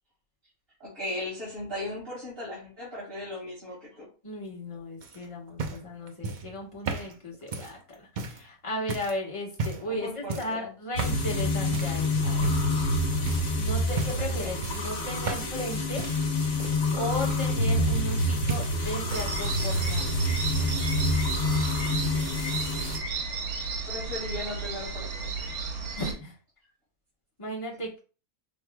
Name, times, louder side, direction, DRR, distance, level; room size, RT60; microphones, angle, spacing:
voice 1, 0.8-4.1 9.8-10.7 14.2-14.5 23.8-25.6, left 1 dB, 40° right, -8 dB, 2.2 m, -37 dB
voice 2, 4.2-12.6 13.5-16.0 16.6-20.1 26.0-26.4 27.4-28.0, left 1 dB, 25° left, -3 dB, 1.2 m, -36 dB
sound 1, 5.0-8.4 8.9-9.2 9.5-9.9 10.3-10.6 11.0-11.3 11.7-12.0 12.4-12.9 13.3-13.5 13.9-14.3 14.6-15.7 16.0-18.2 18.5-19.3 19.6-20.1 21.0-21.1, right 4 dB, 60° right, 0.4 m, -35 dB
sound 2, 10.9-23.0, left 1 dB, 70° left, 1.4 m, -27 dB
sound 3, 19.1-26.1, right 4 dB, 90° right, 1.3 m, -33 dB
5.8 x 3.0 x 2.3 m, 0.35 s
omnidirectional pair, 1.5 m